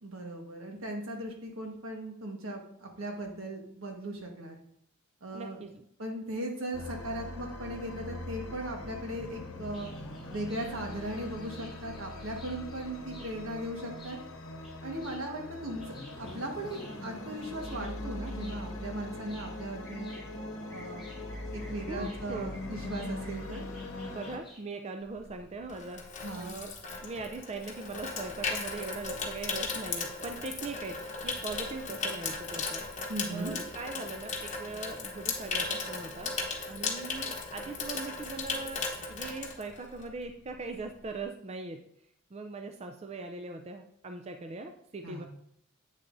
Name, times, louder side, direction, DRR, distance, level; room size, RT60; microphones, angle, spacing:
voice 1, 0.0-4.6 5.2-5.6 6.0-9.9 10.3-14.2 14.8-20.1 20.7-21.1 21.5-23.7 26.2-26.5 33.1-33.7 45.0-45.3, right 1 dB, 80° right, 2 dB, 1.4 m, -38 dB
voice 2, 5.3-5.8 21.9-22.5 24.0-26.7 27.0-32.8 33.3-36.3 36.7-38.8 39.1-41.8 42.3-45.2, right 3 dB, 30° right, 6 dB, 0.4 m, -40 dB
sound 1, 6.7-24.4, left 2 dB, 85° left, 0.9 m, -41 dB
sound 2, 9.6-24.6, left 1 dB, ahead, 2.6 m, -55 dB
Water tap faucet / Sink (filling or washing), 25.2-40.2 40.5-40.8, left 4 dB, 35° left, 1.0 m, -36 dB
8.2 x 6.7 x 2.6 m, 0.68 s
head